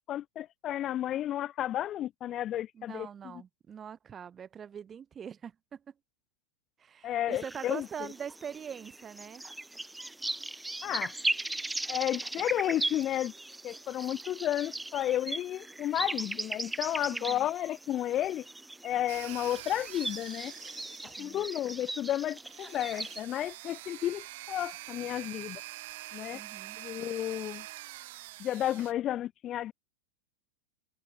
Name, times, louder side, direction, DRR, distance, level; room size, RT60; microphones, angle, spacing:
voice 1, 0.1-3.4 7.0-7.9 10.8-11.1 11.9-13.3 13.6-18.4 18.8-20.5 21.0-25.6 26.1-26.4 26.8-27.7 28.4-29.7, left 12 dB, 30° left, 0.7 m, -32 dB
voice 2, 2.7-5.8 6.8-9.4 17.1-17.5 21.2-21.4 26.3-26.8, right 8 dB, 20° right, 5.0 m, -43 dB
sound 1, 7.3-23.2, right 2 dB, 5° right, 1.6 m, -38 dB
sound 2, 19.1-21.5 22.4-28.9, right 19 dB, 50° right, 4.0 m, -45 dB
figure-of-eight pair, 90°, 0 cm